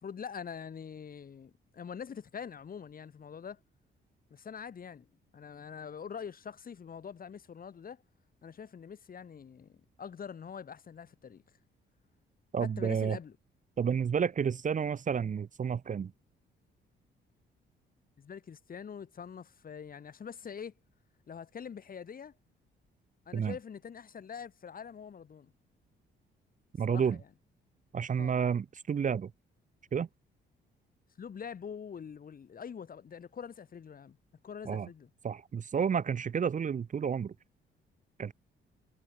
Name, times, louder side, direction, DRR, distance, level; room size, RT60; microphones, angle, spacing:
voice 1, 0.0-3.6 4.3-5.1 5.3-8.0 8.4-11.4 12.6-13.4 18.2-20.7 21.3-22.3 23.3-25.5 26.9-27.2 28.2-28.4 31.2-34.2 34.4-35.1, left 7 dB, 45° left, 2.7 m, -44 dB
voice 2, 12.5-13.2 13.8-16.1 23.3-23.5 26.7-27.2 27.9-29.3 29.9-30.1 34.6-34.9 35.2-37.3 38.2-38.3, right 7 dB, 40° right, 0.9 m, -30 dB
cardioid pair, 90°, 20 cm